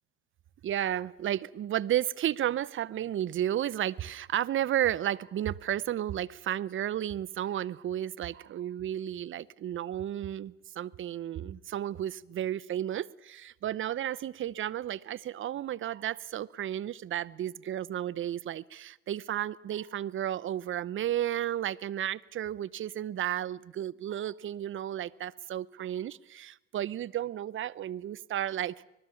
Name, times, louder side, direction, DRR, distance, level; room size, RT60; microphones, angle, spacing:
voice 1, 0.6-28.8, right 11 dB, 30° right, 0.8 m, -33 dB
25.0 x 20.0 x 7.1 m
hypercardioid pair, 95°, 40 cm